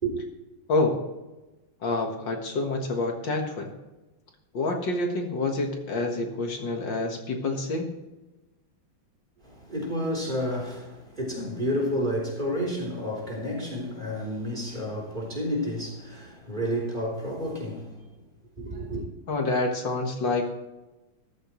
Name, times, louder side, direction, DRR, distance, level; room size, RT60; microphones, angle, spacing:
voice 1, 0.7-1.0 1.8-3.7 4.5-7.9 19.3-20.5, left 2 dB, 65° left, 2.2 m, -27 dB
voice 2, 9.4-18.0 18.6-19.0, equal, 20° right, 3.7 m, -30 dB
14.0 x 14.0 x 3.1 m
omnidirectional pair, 2.2 m